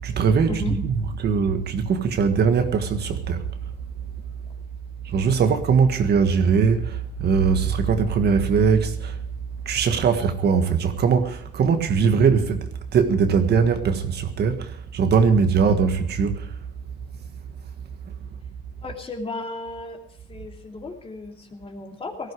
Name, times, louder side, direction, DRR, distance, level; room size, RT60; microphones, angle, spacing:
voice 1, 0.0-3.5 5.0-9.2 9.6-16.5, right 6 dB, 55° right, 1.7 m, -21 dB
voice 2, 18.8-20.0 20.3-22.3, left 2 dB, 30° left, 2.8 m, -34 dB
18.0 x 15.0 x 4.8 m
cardioid pair, 120°, 20 cm